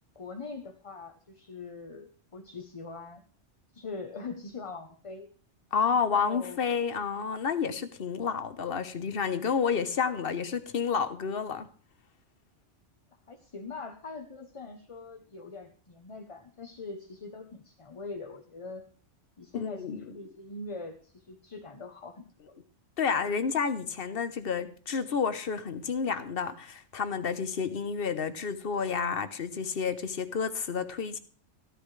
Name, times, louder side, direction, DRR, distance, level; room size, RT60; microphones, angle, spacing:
voice 1, 0.1-3.2 3.7-5.3 5.9-6.6 13.3-18.8 19.4-22.6, left 4 dB, 30° left, 0.8 m, -42 dB
voice 2, 5.7-11.7 19.5-20.0 23.0-31.2, left 6 dB, 55° left, 1.1 m, -30 dB
13.5 x 13.0 x 3.2 m
omnidirectional pair, 1.2 m